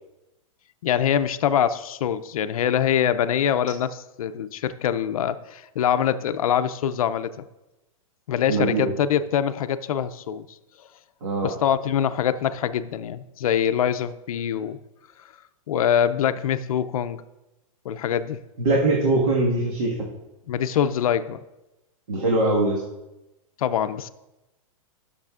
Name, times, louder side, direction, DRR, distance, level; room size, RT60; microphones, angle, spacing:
voice 1, 0.8-7.4 8.3-10.4 11.4-14.8 15.7-17.2 17.8-18.4 20.5-21.4 23.6-24.1, left 9 dB, 80° left, 12 dB, 0.5 m, -24 dB
voice 2, 8.5-8.9 11.2-11.5 18.6-19.9 22.1-22.8, right 2 dB, 80° right, -2 dB, 1.6 m, -22 dB
13.0 x 6.7 x 2.4 m, 0.98 s
supercardioid pair, 170°, 18 cm